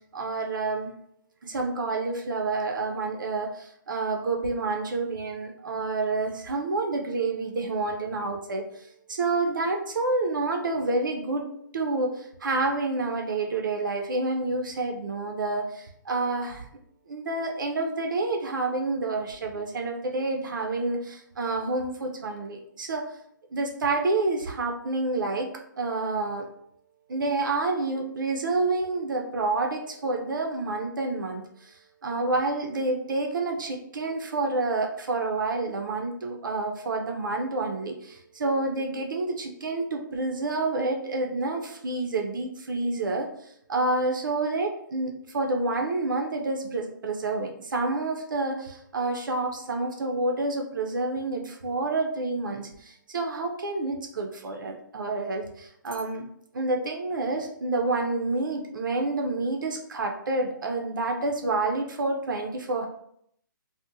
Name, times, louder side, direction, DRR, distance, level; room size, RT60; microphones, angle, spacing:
voice 1, 0.1-0.9 1.4-11.5 11.7-16.7 17.1-23.1 23.5-25.5 25.8-26.5 27.1-56.2 56.5-62.9, right 3 dB, 70° right, 3 dB, 0.4 m, -28 dB
2.6 x 2.1 x 2.5 m, 0.71 s
figure-of-eight pair, 140°, 11 cm